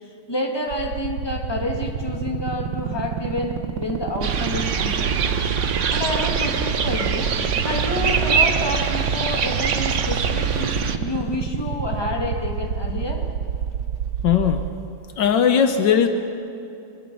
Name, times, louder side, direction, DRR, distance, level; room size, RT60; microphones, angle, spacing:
voice 1, 0.3-5.4 5.9-7.3 7.6-13.2, left 1 dB, 15° left, 0 dB, 2.2 m, -29 dB
sound 1, 0.7-14.7, right 7 dB, 70° right, 1.7 m, -27 dB
sound 2, 4.2-11.0, right 6 dB, 50° right, 1.1 m, -23 dB
voice 2, 14.2-14.7 15.2-16.1, left 8 dB, 75° left, 7 dB, 1.6 m, -18 dB
24.0 x 22.5 x 5.6 m, 2.8 s
omnidirectional pair, 2.0 m